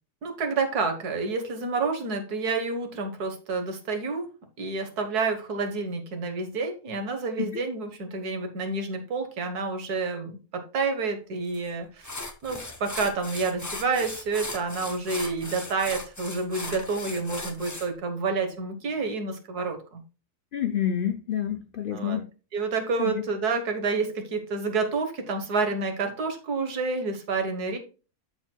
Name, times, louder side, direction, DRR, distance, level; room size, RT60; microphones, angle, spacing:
voice 1, 0.2-4.3 4.6-12.2 12.4-20.0 21.9-22.2 22.5-27.8, right 4 dB, 80° right, 5 dB, 1.8 m, -29 dB
sound 1, 11.5-11.7 12.0-17.9, left 2 dB, 20° left, 0.5 m, -37 dB
voice 2, 20.5-22.2 23.0-23.2, left 10 dB, 85° left, 7 dB, 0.4 m, -28 dB
13.0 x 4.5 x 2.3 m, 0.34 s
omnidirectional pair, 1.6 m